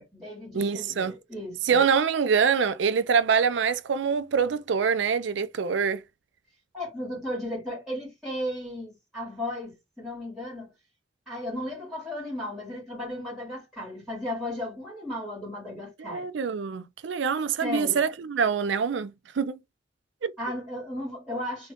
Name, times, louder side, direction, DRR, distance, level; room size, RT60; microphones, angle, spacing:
voice 1, 0.0-1.8 6.7-10.7 11.3-16.3 17.6-18.0 20.4-21.7, left 1 dB, 5° right, 2.3 m, -35 dB
voice 2, 0.5-1.1 1.6-6.0 16.0-19.6 20.2-20.3, right 6 dB, 85° right, 0.4 m, -25 dB
3.6 x 2.7 x 3.4 m
head